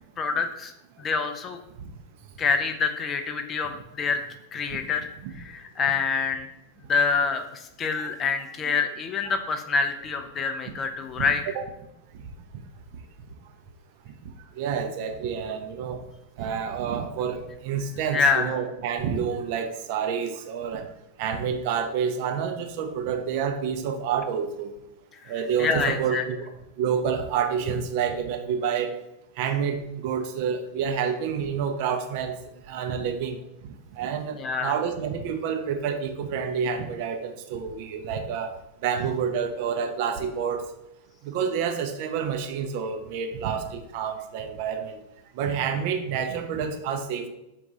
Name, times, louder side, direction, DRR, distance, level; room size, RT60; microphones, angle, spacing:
voice 1, 0.2-0.7 1.0-1.6 2.4-4.2 4.5-5.1 5.4-6.5 6.9-11.4 18.1-18.5 25.2-25.3 25.6-26.2 34.4-34.7, left 5 dB, 25° left, 7 dB, 0.4 m, -26 dB
voice 2, 11.2-11.6 14.6-16.0 16.4-20.9 21.2-24.7 25.3-26.4 26.8-28.9 29.4-32.4 32.7-33.4 33.9-38.5 38.8-40.6 41.2-45.0 45.4-47.3, right 7 dB, 50° right, 5 dB, 0.4 m, -28 dB
3.8 x 2.3 x 3.8 m, 0.87 s
figure-of-eight pair, 90°, 0 cm